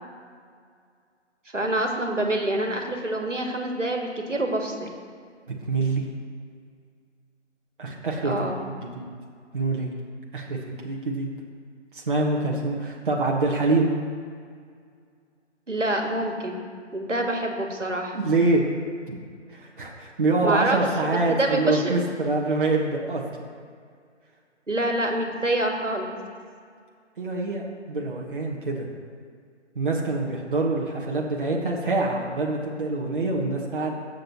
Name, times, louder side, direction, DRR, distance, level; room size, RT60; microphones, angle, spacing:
voice 1, 1.5-4.9 8.2-8.6 15.7-16.6 16.9-18.2 20.4-20.8 21.3-21.9 24.7-26.2, right 1 dB, 80° right, 2 dB, 1.9 m, -26 dB
voice 2, 5.5-6.0 7.8-8.5 8.9-9.0 9.5-9.9 10.3-11.3 11.9-13.9 18.1-18.6 19.1-19.2 19.5-23.2 27.2-28.9 29.7-33.9, right 3 dB, 45° right, -2 dB, 1.4 m, -25 dB
18.5 x 7.8 x 3.1 m, 2.1 s
figure-of-eight pair, 145°, 36 cm